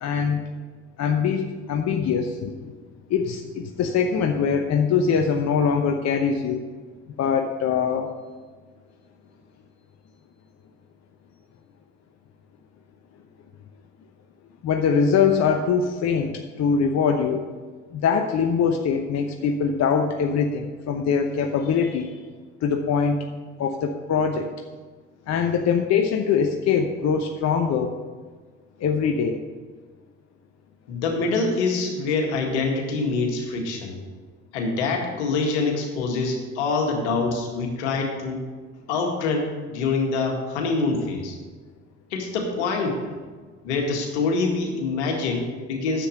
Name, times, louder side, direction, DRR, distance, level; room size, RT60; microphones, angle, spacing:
voice 1, 0.0-0.4 1.0-2.7 3.1-6.7 7.2-8.1 14.6-17.4 17.9-22.1 22.6-23.3 23.6-24.5 25.3-28.0 28.8-29.4, left 6 dB, 50° left, 5 dB, 0.9 m, -23 dB
voice 2, 30.9-34.0 34.5-38.4 38.9-41.4 42.1-43.0 43.6-46.1, left 3 dB, 75° left, 2 dB, 1.9 m, -25 dB
10.0 x 7.7 x 6.5 m, 1.4 s
hypercardioid pair, 55°, 34 cm